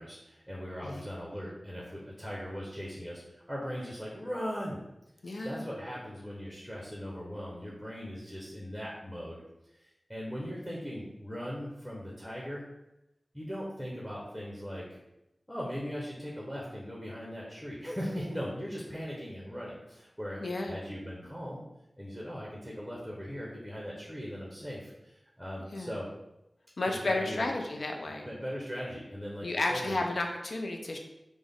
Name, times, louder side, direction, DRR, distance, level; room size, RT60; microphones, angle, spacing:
voice 1, 0.0-4.8 5.4-9.4 9.7-12.6 13.3-15.0 15.5-21.6 22.0-26.1 26.9-27.5 28.1-30.0, equal, 5° left, -4 dB, 0.7 m, -39 dB
voice 2, 5.2-5.6 20.4-20.8 25.7-26.0 26.8-28.3 29.4-31.0, left 2 dB, 75° left, 2 dB, 0.4 m, -32 dB
3.5 x 2.0 x 3.5 m, 0.90 s
wide cardioid pair, 50°, 0 cm